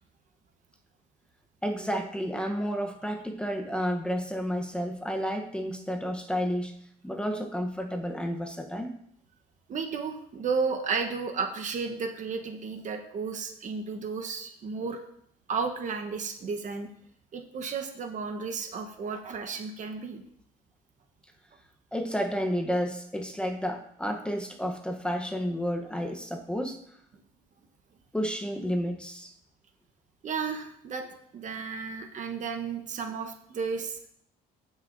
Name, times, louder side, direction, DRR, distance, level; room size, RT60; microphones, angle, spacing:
voice 1, 1.6-6.8 7.0-8.9 21.9-26.8 28.1-29.3, equal, 5° left, 3 dB, 0.9 m, -31 dB
voice 2, 9.7-15.0 15.5-16.9 17.3-20.2 30.2-31.0 31.3-34.1, right 5 dB, 45° right, 5 dB, 1.0 m, -33 dB
15.5 x 6.1 x 2.6 m, 0.70 s
cardioid pair, 110°, 17 cm